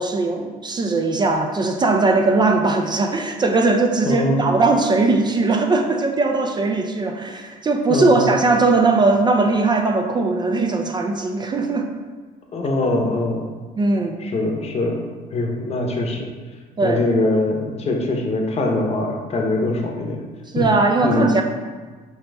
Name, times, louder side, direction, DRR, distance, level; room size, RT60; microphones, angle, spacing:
voice 1, 0.0-11.9 13.8-14.2 16.8-17.1 20.5-21.4, right 3 dB, 25° right, 3 dB, 0.4 m, -19 dB
voice 2, 4.0-4.4 7.9-8.3 12.5-13.5 14.2-16.3 16.8-20.2 20.6-20.7 21.0-21.4, left 2 dB, 40° left, 1 dB, 0.8 m, -22 dB
5.4 x 2.9 x 3.4 m, 1.4 s
cardioid pair, 110°, 17 cm